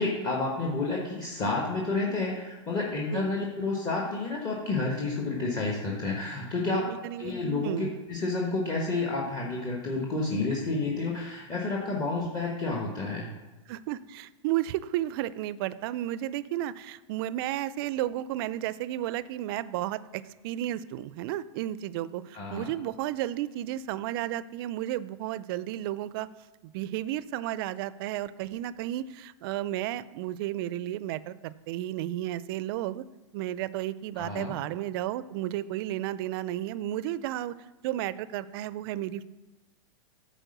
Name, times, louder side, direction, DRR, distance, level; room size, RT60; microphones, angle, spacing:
voice 1, 0.0-6.8 7.2-13.3 22.3-22.7 34.1-34.6, left 3 dB, 25° left, -2 dB, 1.3 m, -30 dB
voice 2, 6.7-7.3 7.6-7.9 13.7-26.3 26.7-33.0 33.3-37.5 37.8-39.2, right 13 dB, 50° right, 17 dB, 0.4 m, -33 dB
9.0 x 4.4 x 6.6 m, 1.1 s
hypercardioid pair, 130°, 16 cm